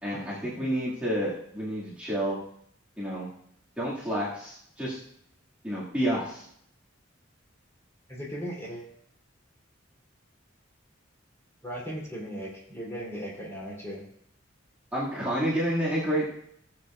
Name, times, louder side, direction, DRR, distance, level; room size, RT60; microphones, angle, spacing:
voice 1, 0.0-2.4 3.0-3.3 3.8-5.0 5.6-6.4 14.9-16.2, equal, 5° right, -10 dB, 2.2 m, -29 dB
voice 2, 8.1-8.9 11.6-14.0, equal, 15° left, -5 dB, 3.3 m, -37 dB
18.5 x 7.7 x 2.5 m, 0.69 s
head